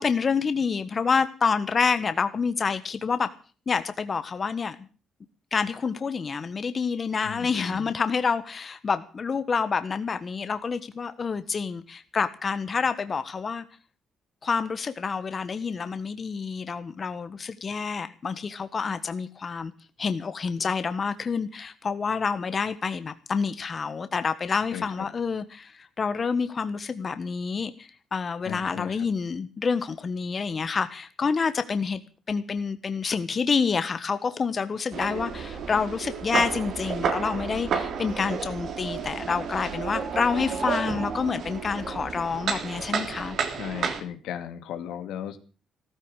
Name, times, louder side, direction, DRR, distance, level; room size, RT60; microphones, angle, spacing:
voice 1, 0.0-3.3 3.7-4.8 5.5-13.6 14.4-19.7 20.0-32.0 32.3-43.4, left 5 dB, 40° left, 11 dB, 1.4 m, -28 dB
voice 2, 7.2-7.9 24.7-24.9 28.4-29.0 43.6-45.4, left 10 dB, 90° left, 8 dB, 2.3 m, -36 dB
sound 1, 34.9-44.0, right 6 dB, 65° right, 3.5 m, -31 dB
15.0 x 14.0 x 6.4 m, 0.37 s
cardioid pair, 90°, 0 cm